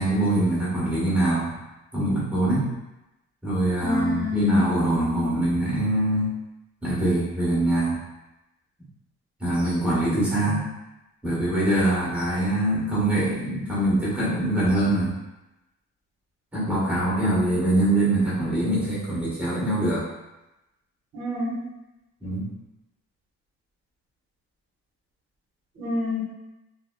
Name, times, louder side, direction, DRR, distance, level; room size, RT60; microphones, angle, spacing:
voice 1, 0.0-1.5 1.9-2.7 3.4-6.3 6.8-8.0 9.4-10.6 11.2-15.1 16.5-20.0 22.2-22.5, right 1 dB, 5° right, -9 dB, 1.3 m, -23 dB
voice 2, 3.8-4.7 10.5-10.6 21.1-21.6 25.8-26.2, left 4 dB, 55° right, -7 dB, 1.1 m, -27 dB
3.8 x 2.1 x 2.2 m, 0.96 s
cardioid pair, 90°, 30 cm